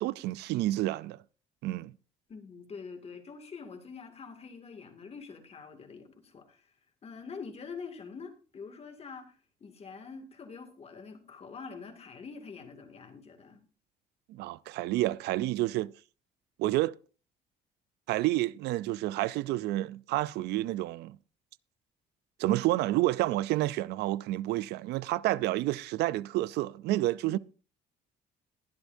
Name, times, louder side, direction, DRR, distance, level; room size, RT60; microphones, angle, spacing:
voice 1, 0.0-1.2 1.6-1.9 14.3-15.9 16.6-16.9 18.1-21.2 22.4-27.4, right 16 dB, 80° right, 0.4 m, -29 dB
voice 2, 2.3-6.7 7.0-9.4 9.6-13.6 27.2-27.4, left 5 dB, 35° left, 2.2 m, -45 dB
22.0 x 8.1 x 2.6 m
cardioid pair, 110°, 17 cm